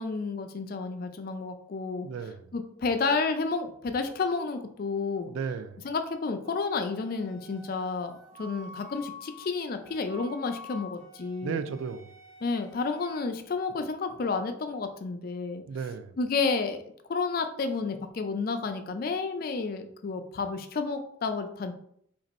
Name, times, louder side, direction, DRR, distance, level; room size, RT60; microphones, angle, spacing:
voice 1, 0.0-2.1 2.5-5.3 5.8-8.1 8.4-11.6 12.4-15.6 16.2-16.8 17.1-21.7, left 4 dB, 50° left, 7 dB, 0.4 m, -31 dB
voice 2, 2.0-2.5 5.3-5.9 11.4-12.1 15.7-16.2, right 6 dB, 80° right, 11 dB, 0.3 m, -35 dB
Wind instrument woodwind instrument, 6.4-13.3, left 3 dB, 40° right, 1.1 m, -49 dB
2.9 x 2.6 x 4.1 m, 0.69 s
head